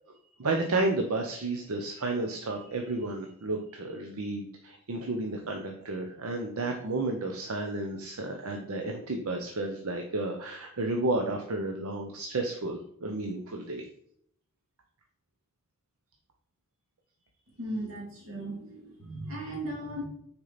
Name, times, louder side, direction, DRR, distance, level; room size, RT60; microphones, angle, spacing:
voice 1, 0.1-13.8, right 2 dB, 85° right, 3 dB, 0.8 m, -32 dB
voice 2, 17.6-20.0, right 1 dB, 70° right, -2 dB, 2.4 m, -37 dB
6.3 x 4.5 x 4.1 m, 0.68 s
head